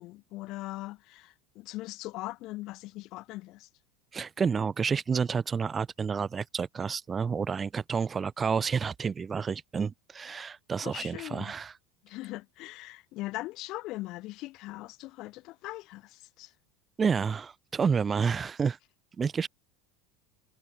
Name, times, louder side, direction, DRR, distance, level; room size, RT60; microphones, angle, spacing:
voice 1, 0.0-3.7 10.8-11.5 12.0-16.5, left 19 dB, 55° left, 0.6 m, -40 dB
voice 2, 4.1-11.7 17.0-18.8 19.2-19.5, right 6 dB, 25° right, 0.4 m, -29 dB
supercardioid pair, 115°, 0 cm